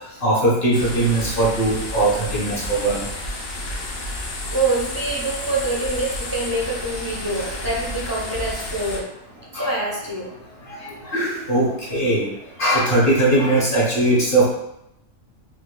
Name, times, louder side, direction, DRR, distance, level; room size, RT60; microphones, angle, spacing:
voice 1, 0.2-3.0 9.5-9.7 11.1-12.2 12.6-14.4, right 2 dB, 45° left, -5 dB, 1.4 m, -19 dB
sound 1, 0.7-9.0, left 1 dB, 90° left, 1.2 m, -31 dB
voice 2, 4.5-9.1 9.5-10.3, right 2 dB, 30° right, -4 dB, 0.4 m, -25 dB
4.4 x 3.0 x 2.2 m, 0.81 s
omnidirectional pair, 1.4 m